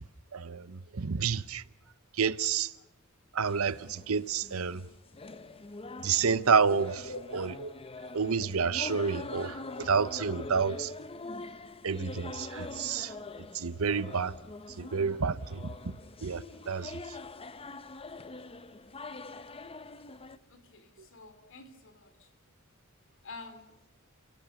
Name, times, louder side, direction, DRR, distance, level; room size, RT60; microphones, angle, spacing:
voice 1, 0.3-1.6 2.2-2.7 3.3-4.8 6.0-7.1 7.3-7.7 8.1-10.9 11.8-13.1 13.5-14.3 14.8-15.7 16.2-17.0, right 5 dB, 70° right, 0.8 m, -29 dB
sound 1, 3.5-20.4, left 3 dB, 25° left, 0.7 m, -44 dB
voice 2, 20.5-22.3 23.2-23.8, left 2 dB, 65° left, 3.2 m, -47 dB
29.5 x 17.0 x 7.0 m
head